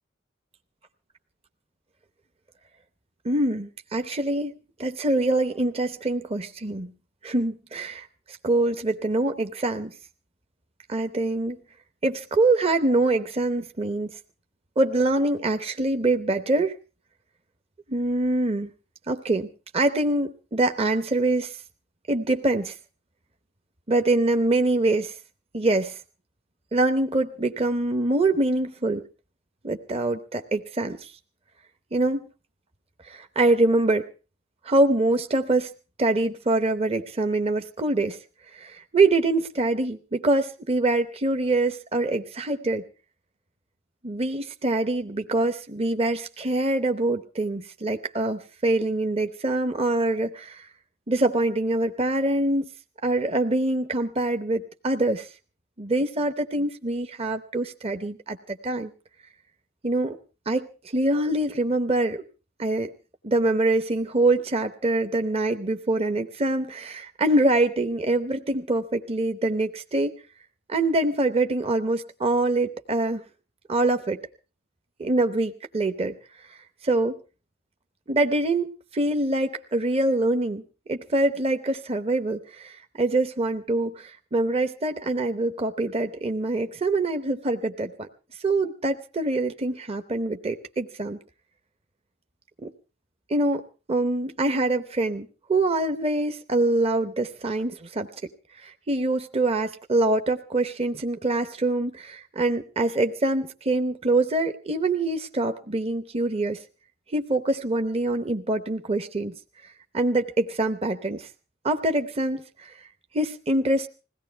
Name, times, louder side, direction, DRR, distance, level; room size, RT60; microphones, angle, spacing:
voice 1, 3.2-4.5 4.8-6.9 7.2-9.9 10.9-11.6 12.0-14.2 14.8-16.8 17.9-18.7 19.1-21.6 22.1-22.8 23.9-25.2 25.5-26.0 26.7-29.1 29.6-31.1 31.9-32.3 33.0-34.1 34.6-35.7 36.0-38.2 38.5-42.8 44.0-50.7 51.1-52.7 53.0-55.3 55.8-58.9 59.8-60.2 60.5-62.3 62.6-62.9 63.2-70.2 70.7-73.2 73.7-74.2 75.0-76.2 76.8-77.2 78.1-80.6 80.9-88.1 88.4-91.2 92.6-92.7 93.3-98.1 98.6-106.6 107.1-109.3 109.6-111.3 111.6-112.8 113.1-113.9, right 2 dB, 30° right, 7 dB, 0.8 m, -24 dB
21.0 x 17.0 x 3.3 m, 0.34 s
head